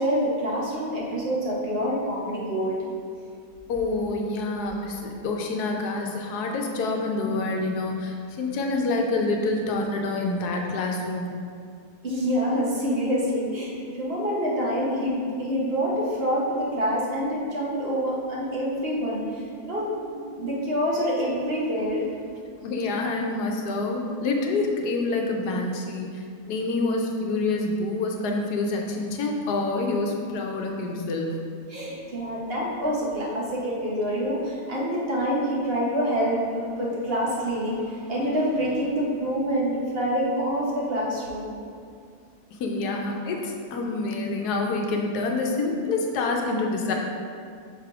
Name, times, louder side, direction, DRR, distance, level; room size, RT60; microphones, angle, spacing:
voice 1, 0.0-2.8 12.0-22.1 31.7-41.5, equal, 45° right, -5 dB, 1.1 m, -26 dB
voice 2, 3.7-11.3 22.6-31.3 42.5-46.9, left 3 dB, 90° left, 1 dB, 1.3 m, -27 dB
5.9 x 3.5 x 4.8 m, 2.3 s
omnidirectional pair, 1.6 m